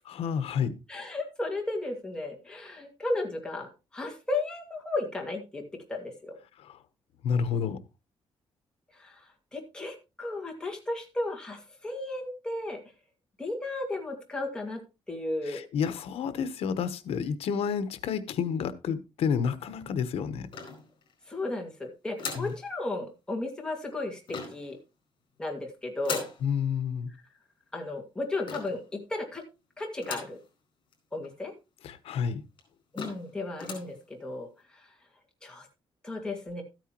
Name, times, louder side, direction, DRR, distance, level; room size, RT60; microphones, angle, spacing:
voice 1, 0.1-0.7 7.2-7.8 15.4-20.5 22.4-22.5 26.4-27.1 31.8-32.4, left 7 dB, 80° left, 1.1 m, -30 dB
voice 2, 0.9-5.6 5.9-6.4 9.0-9.2 9.5-12.8 13.4-14.8 15.1-15.6 21.3-24.8 25.4-26.2 27.7-29.4 29.8-30.4 31.1-31.5 32.9-34.5 35.4-35.7 36.0-36.6, left 2 dB, 10° left, 2.1 m, -34 dB
sound 1, 20.5-21.3 22.2-22.6 24.3-24.7 26.0-26.4 28.5-28.9 30.0-30.4 30.9-31.0 31.2-31.3 32.1-32.2 32.6-32.7 33.0-33.3 33.6-33.9, left 5 dB, 55° left, 4.4 m, -38 dB
13.5 x 9.2 x 3.0 m
cardioid pair, 175°, 10 cm